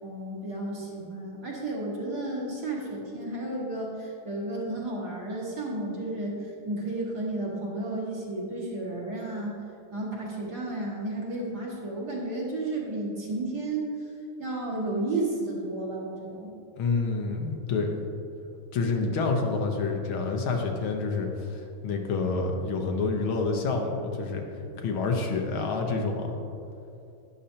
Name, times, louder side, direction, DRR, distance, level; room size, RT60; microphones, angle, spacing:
voice 1, 0.0-9.5 9.9-13.9 14.4-16.5, right 2 dB, 50° right, -5 dB, 2.3 m, -32 dB
voice 2, 16.8-18.0 18.7-24.4 24.8-26.4, left 4 dB, 75° left, 3 dB, 1.8 m, -28 dB
12.0 x 10.0 x 2.8 m, 2.6 s
omnidirectional pair, 2.3 m